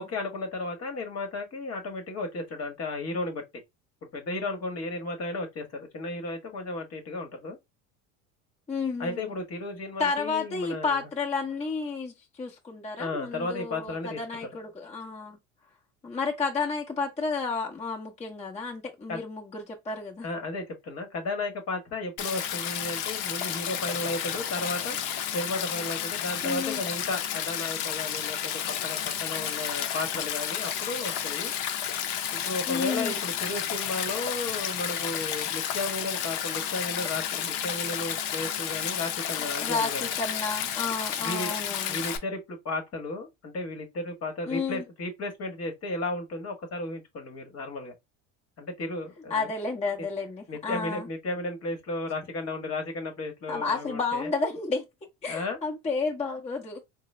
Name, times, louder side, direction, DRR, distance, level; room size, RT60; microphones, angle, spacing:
voice 1, 0.0-3.4 4.0-7.6 9.0-11.1 13.0-14.2 19.1-19.2 20.2-25.0 25.3-28.5 28.8-31.5 32.3-40.1 41.2-41.5 41.9-47.9 48.6-49.5 50.5-54.3 55.2-55.6, left 2 dB, 40° left, 1.1 m, -34 dB
voice 2, 8.7-9.3 10.0-15.4 16.0-20.3 26.4-26.8 32.7-33.2 39.6-42.0 44.5-44.8 49.3-51.1 53.5-54.8 55.2-56.8, left 4 dB, 20° left, 0.8 m, -31 dB
Stream, 22.2-42.2, left 9 dB, 70° left, 0.7 m, -31 dB
3.7 x 2.1 x 3.1 m
supercardioid pair, 95°, 36 cm